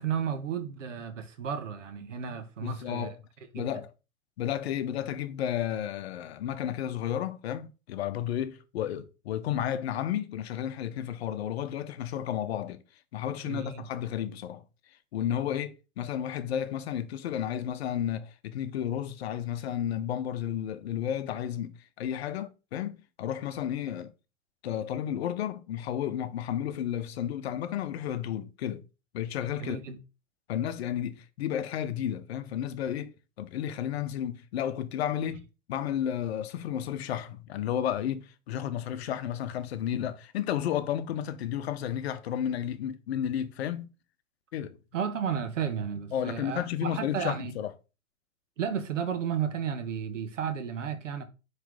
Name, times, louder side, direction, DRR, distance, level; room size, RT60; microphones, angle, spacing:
voice 1, 0.0-3.1 3.5-3.8 13.4-13.8 29.6-30.0 44.9-47.5 48.6-51.2, right 7 dB, 60° right, 1.2 m, -33 dB
voice 2, 2.6-3.2 3.5-3.9 4.4-12.8 13.1-14.6 15.1-21.7 22.0-24.1 24.6-28.9 29.1-29.8 30.5-43.9 44.5-44.8 46.1-47.7, left 10 dB, 50° left, 0.8 m, -32 dB
9.2 x 3.3 x 3.6 m
figure-of-eight pair, 105°, 41 cm